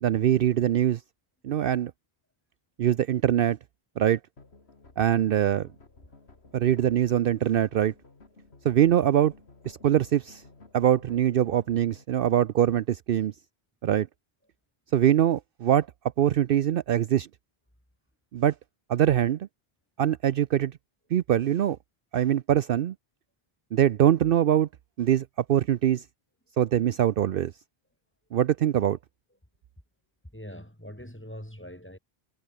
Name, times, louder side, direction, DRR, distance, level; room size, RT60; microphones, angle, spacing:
voice 1, 0.0-1.0 1.4-1.9 2.8-3.6 4.0-4.2 5.0-5.7 6.5-7.9 8.6-9.3 9.7-10.4 10.7-13.3 13.8-14.1 14.9-15.9 16.2-17.3 18.3-18.5 18.9-19.4 20.0-20.7 21.1-21.8 22.1-22.9 23.7-24.7 25.0-26.0 26.6-27.5 28.3-29.0, right 11 dB, 65° right, 0.8 m, -23 dB
sound 1, 4.4-12.0, left 3 dB, 90° left, 3.1 m, -54 dB
voice 2, 30.3-32.0, equal, 10° left, 4.7 m, -44 dB
omnidirectional pair, 1.0 m